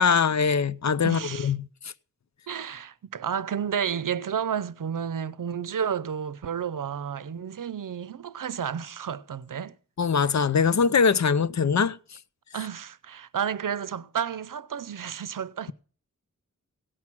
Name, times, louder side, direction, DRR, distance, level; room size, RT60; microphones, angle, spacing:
voice 1, 0.0-1.6 10.0-12.0, left 6 dB, 60° left, 0.6 m, -22 dB
voice 2, 1.0-1.5 2.5-9.8 12.5-15.7, right 8 dB, 85° right, 0.6 m, -31 dB
16.5 x 6.0 x 7.3 m
wide cardioid pair, 65°, 31 cm